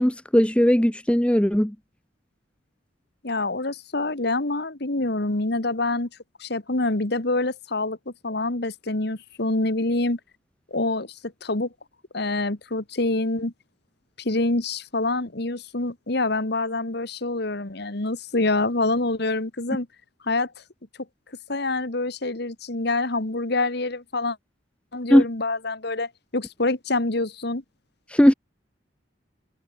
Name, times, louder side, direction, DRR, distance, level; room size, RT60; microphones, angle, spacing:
voice 1, 0.0-1.7 25.1-25.2 28.1-28.3, equal, 5° left, 0.7 m, -18 dB
voice 2, 3.2-6.1 6.4-10.2 10.7-11.7 12.1-13.5 14.2-19.9 20.2-20.5 21.5-24.4 24.9-27.6, left 2 dB, 55° left, 1.8 m, -26 dB
head